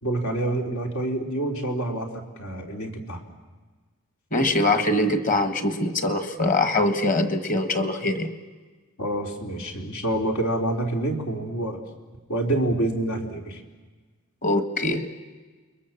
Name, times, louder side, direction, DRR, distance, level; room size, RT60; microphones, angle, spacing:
voice 1, 0.0-3.2 9.0-11.8 12.3-13.6, right 1 dB, 90° left, 1 dB, 3.5 m, -27 dB
voice 2, 4.3-8.3 14.4-15.2, left 2 dB, 40° left, 8 dB, 1.6 m, -23 dB
29.0 x 22.0 x 7.3 m, 1.3 s
head